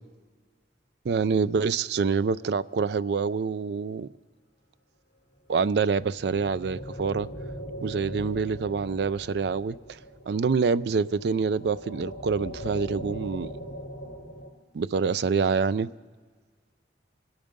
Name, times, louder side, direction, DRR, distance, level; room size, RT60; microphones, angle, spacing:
voice 1, 1.1-4.1 5.5-7.3 7.8-10.0 10.3-13.6 14.7-15.9, right 5 dB, 60° right, 0.3 m, -26 dB
sound 1, 5.9-14.5, equal, 60° left, 3.2 m, -40 dB
26.0 x 8.8 x 5.2 m
head